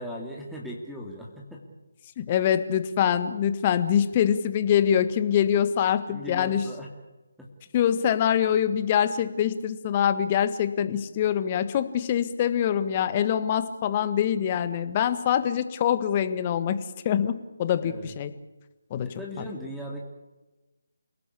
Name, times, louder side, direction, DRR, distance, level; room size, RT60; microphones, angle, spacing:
voice 1, 0.0-1.6 6.1-6.9 7.4-7.5 17.8-18.1 19.0-20.0, equal, ahead, -2 dB, 2.5 m, -38 dB
voice 2, 2.2-6.6 7.7-18.3 18.9-19.1 19.4-19.5, left 9 dB, 30° left, 11 dB, 1.6 m, -24 dB
28.5 x 18.5 x 8.5 m, 1.1 s
figure-of-eight pair, 155°, 0 cm